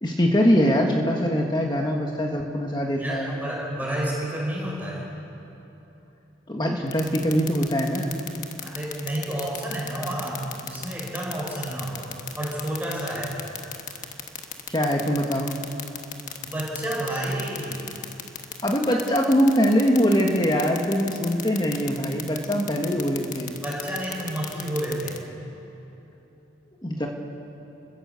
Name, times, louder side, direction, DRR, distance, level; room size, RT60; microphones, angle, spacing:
voice 1, 0.0-3.3 6.5-8.1 14.7-15.5 18.6-23.6 26.8-27.1, equal, 20° left, 1 dB, 1.5 m, -23 dB
voice 2, 2.9-5.1 8.6-12.1 12.4-13.4 16.4-17.8 23.6-25.2, right 1 dB, 10° right, -5 dB, 5.6 m, -30 dB
sound 1, 6.9-25.2, left 9 dB, 40° left, 1.4 m, -34 dB
29.0 x 16.0 x 7.0 m, 2.9 s
head